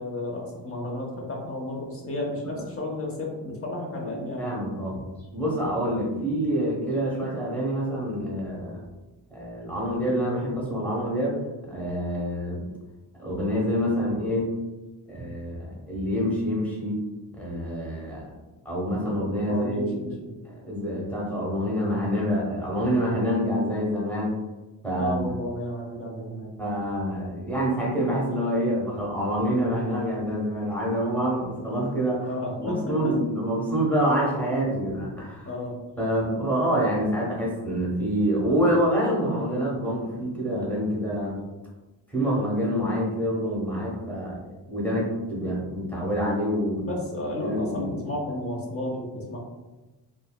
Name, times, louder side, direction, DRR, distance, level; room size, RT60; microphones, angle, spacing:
voice 1, 0.0-4.5 19.5-20.3 24.9-26.5 32.2-33.2 35.4-35.8 46.8-49.4, left 1 dB, 30° left, -1 dB, 0.7 m, -32 dB
voice 2, 4.0-5.0 5.3-8.8 9.3-12.6 13.2-14.5 15.1-17.0 17.3-18.3 18.6-20.0 20.4-24.4 24.8-25.2 26.6-32.3 32.6-35.5 36.0-41.4 42.1-46.9 47.4-47.9, equal, 5° left, -5 dB, 0.9 m, -27 dB
2.5 x 2.1 x 2.2 m, 1.1 s
cardioid pair, 70°, 45 cm